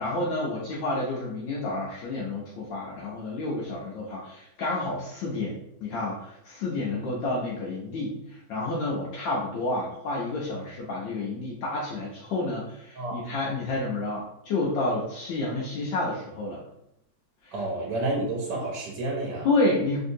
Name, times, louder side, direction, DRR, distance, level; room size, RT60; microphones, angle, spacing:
voice 1, 0.0-16.6 17.4-17.6 19.4-20.0, left 2 dB, 80° left, -5 dB, 1.4 m, -30 dB
voice 2, 17.5-19.5, right 2 dB, 70° right, -2 dB, 1.2 m, -30 dB
3.3 x 2.7 x 2.6 m, 0.81 s
omnidirectional pair, 2.1 m